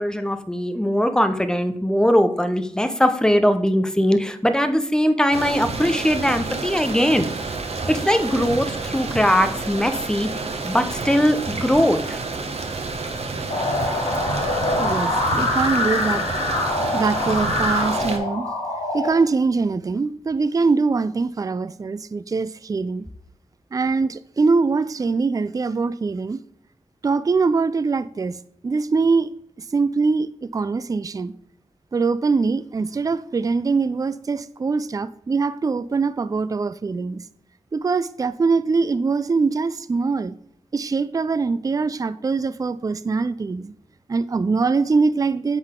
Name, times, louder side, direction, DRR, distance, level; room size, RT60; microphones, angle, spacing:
voice 1, 0.0-7.3 7.9-12.2, equal, 5° left, 0.7 m, -20 dB
sound 1, 5.3-18.2, right 3 dB, 65° right, 0.9 m, -29 dB
sound 2, 13.5-19.1, left 2 dB, 85° left, 2.2 m, -24 dB
voice 2, 14.8-16.2 16.9-18.5 18.9-23.1 23.7-26.4 27.0-28.4 28.6-29.3 29.7-31.3 31.9-37.2 37.7-40.4 40.7-43.7 44.1-45.6, right 4 dB, 30° right, 0.3 m, -22 dB
9.6 x 3.9 x 3.7 m
wide cardioid pair, 95°, 11 cm